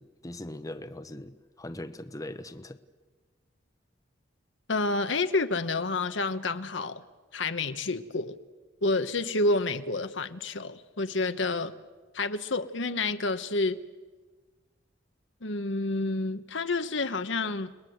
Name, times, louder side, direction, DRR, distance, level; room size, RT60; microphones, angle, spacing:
voice 1, 0.0-2.8, left 1 dB, 20° left, 1.0 m, -40 dB
voice 2, 4.7-7.0 7.3-8.4 8.8-11.7 12.1-13.8 15.4-17.7, left 3 dB, 65° left, 1.2 m, -29 dB
30.0 x 21.0 x 8.0 m
head